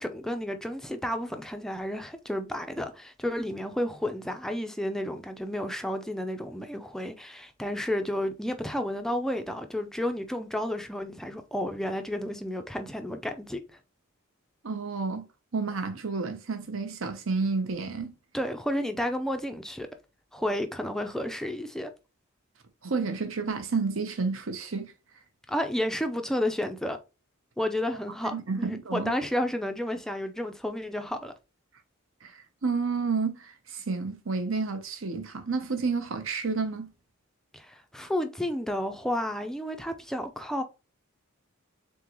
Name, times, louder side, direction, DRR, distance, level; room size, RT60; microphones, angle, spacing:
voice 1, 0.0-13.6 18.3-19.9 20.3-21.9 25.5-27.0 27.6-31.3 37.5-40.6, left 1 dB, ahead, 0.4 m, -31 dB
voice 2, 14.6-15.2 15.5-18.1 22.8-24.9 28.2-29.1 32.2-36.9, right 4 dB, 65° right, 0.8 m, -30 dB
3.8 x 3.7 x 3.0 m
head